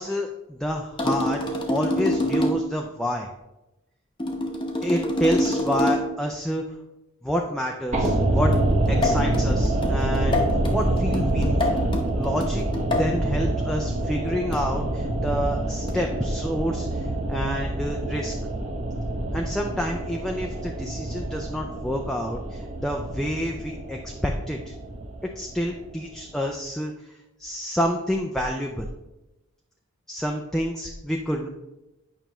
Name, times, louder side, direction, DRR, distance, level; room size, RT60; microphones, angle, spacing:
voice 1, 0.0-3.3 4.8-6.6 7.2-8.5 8.9-10.5 10.7-11.8 12.1-12.6 13.0-18.3 19.3-24.7 25.4-26.9 27.4-28.9 30.1-31.5, equal, ahead, 1 dB, 0.4 m, -28 dB
sound 1, 1.0-2.8 4.2-6.2 8.0-13.2 14.5-14.9 15.9-16.2, left 1 dB, 20° left, 0.8 m, -27 dB
sound 2, 7.9-26.1 26.4-26.5, right 1 dB, 30° right, 1.0 m, -26 dB
8.9 x 5.7 x 3.0 m, 0.97 s
head